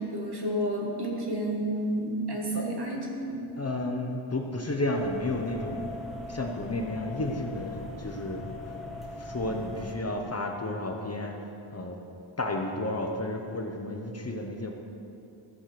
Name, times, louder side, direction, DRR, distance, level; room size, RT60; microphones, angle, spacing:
voice 1, 0.0-3.4, right 1 dB, 50° right, -1 dB, 2.1 m, -30 dB
voice 2, 3.6-5.9 6.3-8.7 9.2-11.4 11.7-12.0 12.4-14.7, left 2 dB, 30° left, 2 dB, 0.9 m, -32 dB
sound 1, 4.9-9.9, left 2 dB, ahead, 1.7 m, -40 dB
15.0 x 6.6 x 6.0 m, 2.7 s
wide cardioid pair, 115°, 49 cm